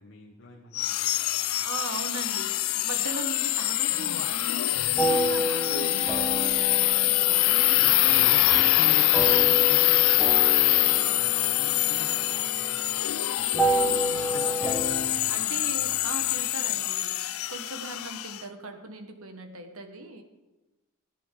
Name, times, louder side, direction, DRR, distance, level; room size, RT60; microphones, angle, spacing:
voice 1, 0.0-1.7 7.7-13.7 14.0-16.4, left 2 dB, 60° left, -2 dB, 1.3 m, -43 dB
sound 1, 0.7-18.4, left 17 dB, 80° left, 0.5 m, -24 dB
voice 2, 1.6-9.1 13.7-14.7 15.0-20.2, right 3 dB, 80° right, 6 dB, 1.3 m, -40 dB
sound 2, 5.0-15.1, right 1 dB, ahead, 1.1 m, -30 dB
15.5 x 10.5 x 3.8 m, 1.1 s
head